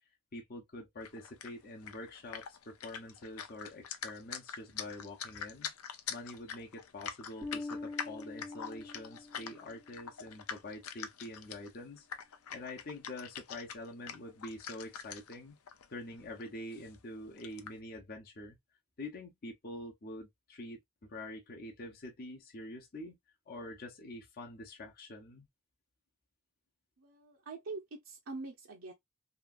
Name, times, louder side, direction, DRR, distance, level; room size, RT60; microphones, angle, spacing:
voice 1, 0.3-5.7 6.1-12.1 12.5-15.6 15.9-18.6 19.0-20.8 21.1-23.2 23.5-25.5, left 1 dB, 45° left, 0.7 m, -46 dB
sound 1, 1.0-15.4 15.7-15.9 16.1-16.9 17.3-17.8, left 7 dB, 85° left, 0.5 m, -44 dB
Bass guitar, 7.4-9.8, left 3 dB, 5° right, 0.5 m, -44 dB
voice 2, 27.0-28.9, right 3 dB, 65° right, 0.6 m, -44 dB
2.9 x 2.4 x 2.5 m
head